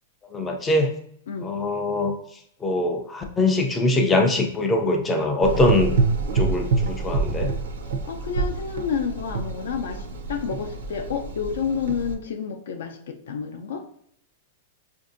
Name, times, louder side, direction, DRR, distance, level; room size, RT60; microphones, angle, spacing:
voice 1, 0.3-0.9 1.4-2.1 2.6-5.9 6.3-7.5, left 2 dB, 10° left, 3 dB, 0.3 m, -22 dB
Gurgling / Engine, 5.4-12.1, right 4 dB, 70° right, 0.5 m, -27 dB
voice 2, 8.0-13.8, left 6 dB, 70° left, 5 dB, 0.5 m, -30 dB
5.1 x 2.6 x 2.5 m, 0.69 s
supercardioid pair, 180°, 0 cm